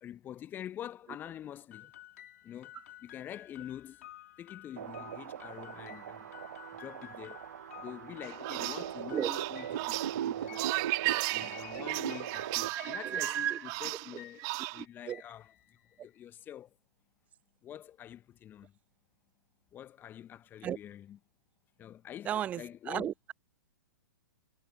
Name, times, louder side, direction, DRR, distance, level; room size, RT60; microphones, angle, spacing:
voice 1, 0.0-1.9 2.4-4.1 4.4-6.3 6.8-7.4 7.8-10.7 11.0-16.8 17.6-18.8 19.7-21.2 21.8-23.1, left 11 dB, 20° left, 1.1 m, -46 dB
sound 1, 1.7-16.2, left 13 dB, 50° left, 3.1 m, -53 dB
sound 2, 4.8-12.7, right 10 dB, 55° right, 0.7 m, -40 dB
sound 3, 8.2-14.8, right 30 dB, 30° right, 1.8 m, -36 dB
voice 2, 12.7-13.6 15.1-15.2 20.6-20.8 22.3-22.6 22.9-23.3, right 10 dB, 15° right, 0.3 m, -33 dB
figure-of-eight pair, 115°, 11 cm